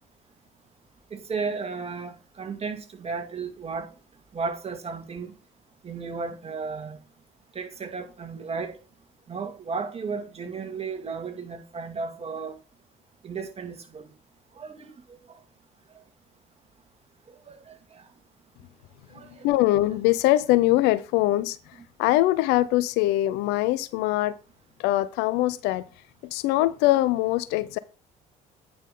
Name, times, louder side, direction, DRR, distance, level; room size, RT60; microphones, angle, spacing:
voice 1, 1.1-3.9 4.3-5.3 5.8-7.0 7.5-8.8 9.3-12.6 13.2-14.1 14.5-14.9 15.3-15.4 17.5-18.1 19.1-19.5, right 5 dB, 35° right, 2.3 m, -34 dB
voice 2, 19.4-21.6 22.0-24.4 24.8-25.8 26.3-27.8, left 16 dB, 75° left, 0.6 m, -22 dB
9.3 x 6.1 x 3.8 m
hypercardioid pair, 70°, 17 cm